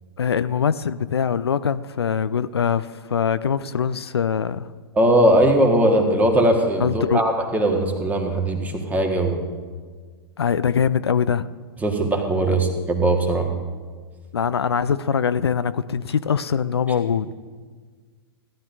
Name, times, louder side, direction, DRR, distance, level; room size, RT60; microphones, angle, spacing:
voice 1, 0.2-4.7 6.8-7.2 10.4-11.5 14.3-17.3, left 7 dB, 75° left, 14 dB, 0.4 m, -22 dB
voice 2, 4.9-9.4 11.8-13.5, right 1 dB, 10° right, 2 dB, 1.6 m, -19 dB
17.0 x 11.5 x 2.7 m, 1.5 s
figure-of-eight pair, 105°, 14 cm